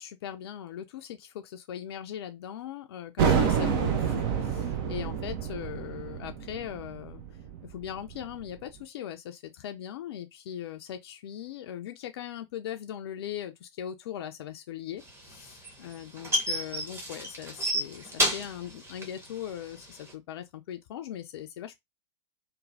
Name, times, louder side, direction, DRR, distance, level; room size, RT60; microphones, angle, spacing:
voice 1, 0.0-7.2 7.6-21.8, left 10 dB, 55° left, 0.4 m, -40 dB
sound 1, 3.2-8.5, right 7 dB, 45° right, 0.7 m, -28 dB
sound 2, 15.1-20.1, equal, 15° right, 1.0 m, -30 dB
3.0 x 2.2 x 2.7 m
figure-of-eight pair, 95°, 16 cm